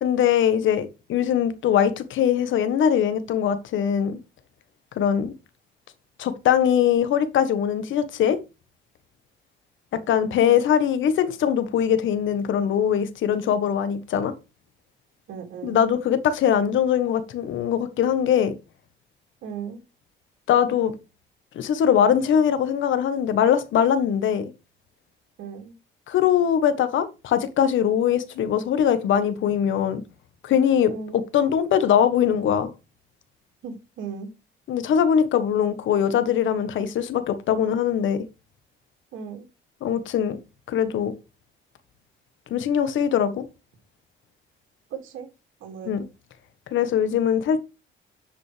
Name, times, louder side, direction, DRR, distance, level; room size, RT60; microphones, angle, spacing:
voice 1, 0.0-4.2 5.0-5.3 6.2-8.4 10.1-14.3 15.6-18.5 20.5-20.9 21.5-24.5 26.1-30.0 30.4-30.9 31.3-32.7 34.7-38.2 39.8-40.4 40.7-41.1 42.5-43.4 45.9-46.0 46.7-47.6, left 9 dB, 75° left, 1.2 m, -21 dB
voice 2, 15.3-15.8 19.4-19.8 25.4-25.7 30.9-31.2 33.6-34.3 39.1-39.5 44.9-45.3 45.6-45.9, right 6 dB, 85° right, 2.4 m, -36 dB
10.0 x 5.2 x 3.3 m
cardioid pair, 90°, 20 cm